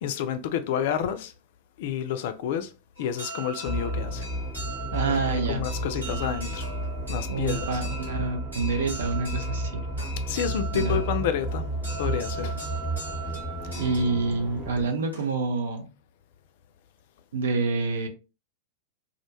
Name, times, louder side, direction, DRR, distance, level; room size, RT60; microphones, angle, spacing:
voice 1, 0.0-1.3 1.8-2.7 3.0-4.3 5.3-6.7 7.1-7.8 10.3-11.7 12.0-12.6, left 8 dB, 50° left, 0.3 m, -29 dB
sound 1, 3.0-15.6, right 1 dB, 85° right, 1.2 m, -40 dB
sound 2, 3.7-14.9, right 1 dB, 15° right, 0.8 m, -32 dB
voice 2, 4.9-5.6 6.0-6.2 7.3-9.8 10.7-11.0 13.7-15.9 17.3-18.1, right 4 dB, 65° right, 0.5 m, -27 dB
2.4 x 2.1 x 2.8 m
figure-of-eight pair, 90°, 0 cm